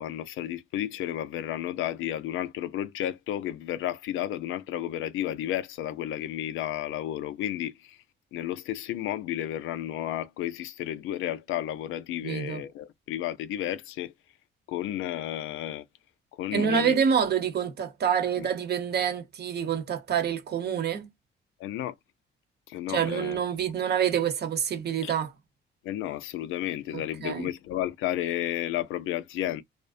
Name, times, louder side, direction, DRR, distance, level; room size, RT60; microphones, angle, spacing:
voice 1, 0.0-8.0 8.3-14.1 14.7-15.8 16.3-17.0 18.4-18.5 21.6-21.9 22.7-23.4 25.0-25.1 25.8-29.6, left 12 dB, 85° left, 0.5 m, -32 dB
voice 2, 12.2-12.6 16.5-21.1 22.9-25.3 27.2-27.5, right 8 dB, 55° right, 0.9 m, -27 dB
2.4 x 2.1 x 2.4 m
cardioid pair, 90°, 20 cm